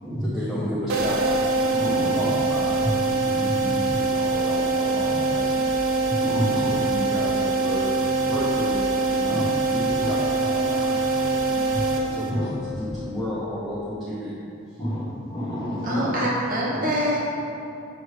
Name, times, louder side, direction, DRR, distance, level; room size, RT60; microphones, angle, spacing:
voice 1, 0.2-1.2 1.9-5.7 6.3-11.8 12.1-14.3 14.7-14.8 16.1-16.2, left 1 dB, ahead, -9 dB, 0.6 m, -33 dB
sound 1, 0.9-12.6, right 3 dB, 80° right, 0.7 m, -24 dB
sound 2, 1.2-13.4, equal, 40° left, 0.7 m, -40 dB
voice 2, 1.7-2.3 3.4-3.8 6.2-6.8 9.2-9.4 10.0-10.1 11.7-11.8 12.3-12.5 14.8-16.2 16.7-16.9, equal, 20° left, -8 dB, 1.1 m, -29 dB
voice 3, 15.8-17.2, equal, 40° right, -5 dB, 1.0 m, -25 dB
6.8 x 3.1 x 4.7 m, 2.7 s
head